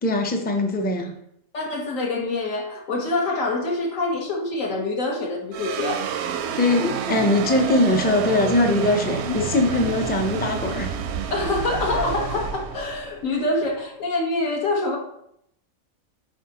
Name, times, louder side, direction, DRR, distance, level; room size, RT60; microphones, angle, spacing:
voice 1, 0.0-1.1 6.6-10.9, left 2 dB, 15° left, 4 dB, 0.3 m, -21 dB
voice 2, 1.5-6.0 11.3-15.0, left 2 dB, 70° left, 0 dB, 1.6 m, -25 dB
sound 1, 5.5-14.1, right 7 dB, 65° right, 0.7 m, -29 dB
7.8 x 4.8 x 2.9 m, 0.75 s
omnidirectional pair, 1.4 m